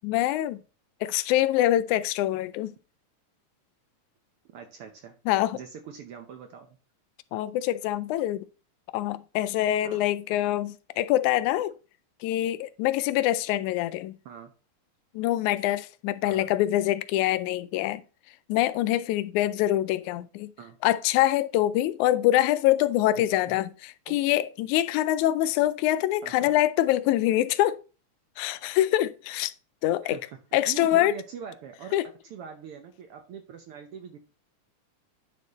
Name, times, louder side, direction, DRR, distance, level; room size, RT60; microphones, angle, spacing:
voice 1, 0.0-0.6 1.0-2.8 5.3-5.6 7.3-8.4 8.9-11.7 12.2-14.2 15.2-18.0 18.5-20.5 20.8-27.8 28.4-29.5 29.8-30.2 30.5-31.2 31.9-32.1, left 14 dB, 90° left, 2.0 m, -25 dB
voice 2, 4.5-5.2 5.5-6.8 9.8-10.1 14.2-14.5 16.2-16.5 20.6-20.8 23.5-23.6 24.1-24.2 26.2-26.5 30.0-30.4 30.7-34.2, right 7 dB, 70° right, 1.4 m, -43 dB
9.8 x 4.2 x 4.1 m
omnidirectional pair, 3.3 m